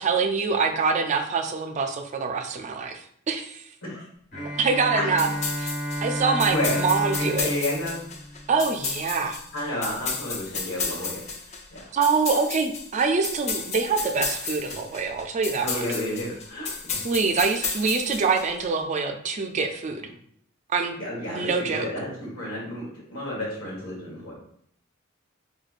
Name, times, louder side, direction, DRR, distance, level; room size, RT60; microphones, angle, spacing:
voice 1, 0.0-3.7 4.6-5.3 5.6-5.7 6.0-7.5 8.5-9.4 11.9-15.8 17.0-20.1 20.7-20.9 21.3-21.9, right 4 dB, 35° right, 5 dB, 0.3 m, -25 dB
Bowed string instrument, 4.3-9.0, equal, 60° left, 1.5 m, -32 dB
sound 1, 5.2-18.7, left 5 dB, 35° left, 0.4 m, -33 dB
voice 2, 6.5-6.8 7.2-8.0 9.5-11.2 11.7-11.8 15.6-17.0 21.0-24.3, left 1 dB, 80° left, -4 dB, 1.4 m, -31 dB
4.9 x 2.2 x 2.4 m, 0.66 s
head